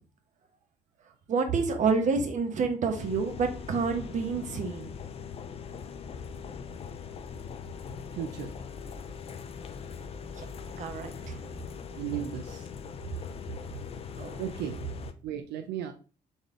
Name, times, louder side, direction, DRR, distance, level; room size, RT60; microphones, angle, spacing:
voice 1, 1.3-4.9 10.4-10.5 10.8-11.4 14.2-14.4, right 4 dB, 45° right, 6 dB, 0.9 m, -29 dB
sound 1, 2.9-15.1, left 6 dB, 35° left, 0.5 m, -41 dB
voice 2, 8.1-8.5 11.9-12.7 14.4-14.8 15.2-15.9, right 10 dB, 80° right, 6 dB, 0.5 m, -35 dB
4.0 x 3.5 x 3.6 m, 0.37 s
cardioid pair, 110°, 17 cm